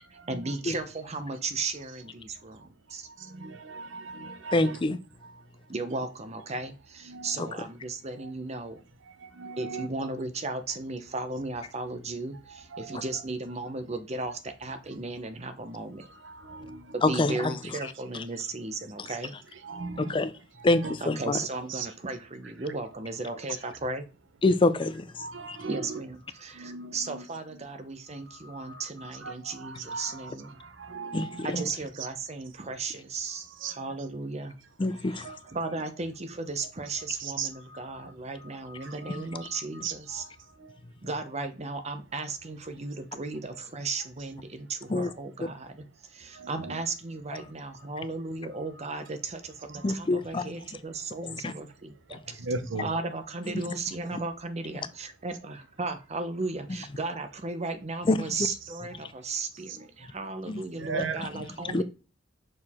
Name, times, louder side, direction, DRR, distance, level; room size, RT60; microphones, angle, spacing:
voice 1, 0.3-3.1 5.7-8.8 9.6-16.1 16.9-19.3 21.0-24.1 25.7-30.6 31.4-34.5 35.1-40.2 41.0-45.9 46.1-52.2 52.8-61.8, right 3 dB, 35° right, 0.9 m, -35 dB
voice 2, 3.4-4.8 7.1-7.3 9.4-9.9 12.7-13.0 16.2-16.8 19.6-20.2 20.8-20.9 21.7-21.9 25.2-26.0 26.6-27.2 28.5-28.8 29.2-30.3 30.8-31.7 33.6-33.7 35.2-35.4 35.7-35.8 37.2-38.1 38.7-40.2 46.4-46.8 49.7-49.9 52.4-52.9 60.8-61.2, right 4 dB, 85° right, 0.9 m, -38 dB
voice 3, 4.5-5.0 7.4-7.5 17.0-17.5 20.0-20.3 20.6-21.4 24.4-25.0 25.5-25.6 31.1-31.6 34.8-35.3 44.9-45.1 49.8-50.4 51.4-51.5 58.1-58.3 60.5-60.6 61.0-61.3 61.7-61.8, left 2 dB, 25° left, 0.4 m, -25 dB
6.3 x 4.6 x 3.6 m
head